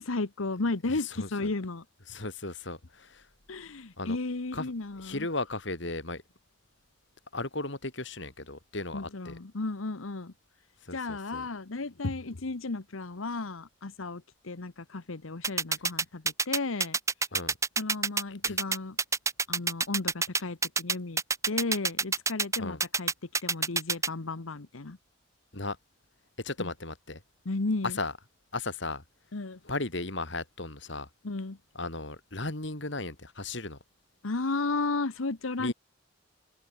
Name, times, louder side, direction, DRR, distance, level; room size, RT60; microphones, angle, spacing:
voice 1, 0.0-1.8 3.5-5.3 8.9-10.3 10.9-17.0 17.8-19.0 19.5-21.2 21.5-23.1 23.4-25.0 26.6-26.7 27.4-28.0 29.3-29.6 31.2-31.6 34.2-35.7, left 3 dB, 90° left, 1.1 m, -34 dB
voice 2, 0.9-1.5 2.1-3.3 4.0-4.2 4.5-4.7 5.0-6.2 7.3-9.4 10.8-11.5 17.3-17.6 18.4-18.6 22.6-22.8 25.5-25.8 26.4-27.2 27.8-28.1 28.5-29.0 29.6-31.1 31.8-33.8 35.6-35.7, left 2 dB, 60° left, 3.5 m, -36 dB
sound 1, 15.4-24.1, right 4 dB, 15° right, 1.2 m, -26 dB
open air
head